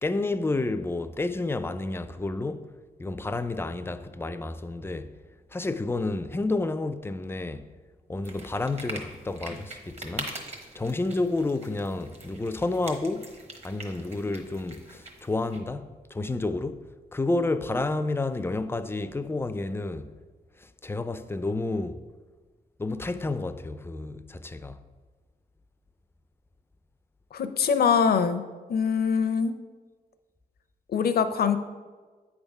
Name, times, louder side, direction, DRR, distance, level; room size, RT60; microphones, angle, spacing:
voice 1, 0.0-2.7 3.0-5.1 5.5-7.7 8.1-10.4 10.7-13.3 13.6-20.1 20.6-22.0 22.8-24.9, left 2 dB, 15° left, 0.4 m, -30 dB
sound 1, 8.2-15.6, right 2 dB, 40° right, 1.3 m, -43 dB
voice 2, 27.3-28.4 28.7-29.5 30.9-31.6, left 6 dB, 70° left, 0.5 m, -23 dB
8.7 x 3.5 x 5.4 m
cardioid pair, 80°, 16 cm